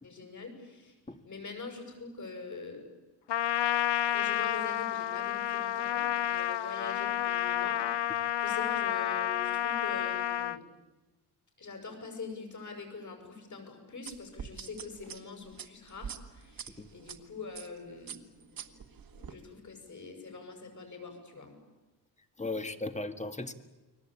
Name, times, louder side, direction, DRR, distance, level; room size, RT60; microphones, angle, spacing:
voice 1, 0.0-1.0 1.2-2.9 4.1-10.6 11.6-18.6 19.1-21.5, left 4 dB, 45° left, 5 dB, 7.1 m, -44 dB
Trumpet, 3.3-10.6, left 12 dB, 85° left, 0.9 m, -30 dB
sound 1, 14.1-17.2 17.5-17.8 18.1-19.3, right 7 dB, 55° right, 1.7 m, -44 dB
voice 2, 22.4-23.5, left 2 dB, 15° left, 9 dB, 1.7 m, -36 dB
30.0 x 22.5 x 8.7 m, 1.2 s
wide cardioid pair, 145°, 41 cm